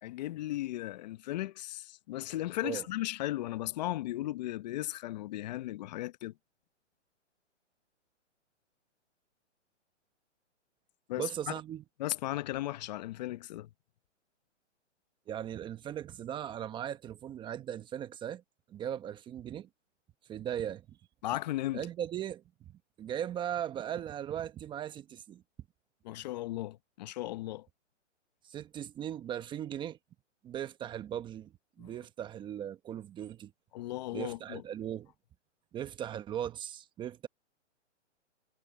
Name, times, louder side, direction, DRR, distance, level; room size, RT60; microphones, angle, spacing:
voice 1, 0.0-6.3 11.1-11.5 12.0-13.7 21.2-21.8 26.0-27.7 31.8-31.9 33.7-34.6, left 15 dB, 35° left, 1.0 m, -36 dB
voice 2, 11.2-11.8 15.3-18.4 18.7-19.7 20.3-21.0 21.7-22.4 23.0-25.4 28.4-30.0 30.4-31.5 31.8-33.5 34.1-35.1 35.7-37.3, right 10 dB, 15° right, 1.1 m, -38 dB
hypercardioid pair, 145°, 37 cm